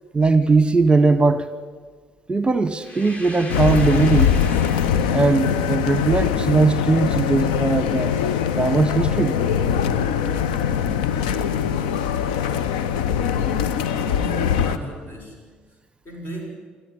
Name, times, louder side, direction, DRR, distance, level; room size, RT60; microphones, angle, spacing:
voice 1, 0.1-1.5 2.3-4.3 5.1-8.1 8.6-9.3, right 3 dB, 20° right, 13 dB, 1.0 m, -19 dB
sound 1, 2.8-5.6, left 1 dB, 30° left, 2.6 m, -39 dB
sound 2, 3.5-14.8, left 8 dB, 75° left, 0.9 m, -22 dB
voice 2, 13.8-15.5 16.0-16.5, right 1 dB, 50° left, 2 dB, 6.7 m, -36 dB
28.0 x 10.5 x 9.9 m, 1.5 s
figure-of-eight pair, 50°, 5 cm